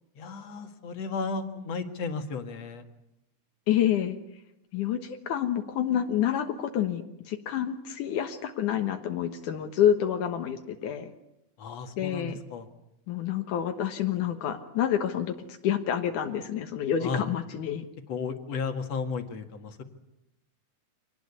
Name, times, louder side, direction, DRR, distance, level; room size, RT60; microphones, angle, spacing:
voice 1, 0.2-2.8 11.6-12.7 17.0-17.2 18.1-19.8, left 4 dB, 60° left, 6 dB, 2.9 m, -34 dB
voice 2, 3.7-4.2 4.7-11.1 12.0-12.4 13.1-17.8, left 10 dB, 85° left, 5 dB, 2.8 m, -28 dB
25.5 x 19.0 x 9.8 m, 0.85 s
omnidirectional pair, 3.5 m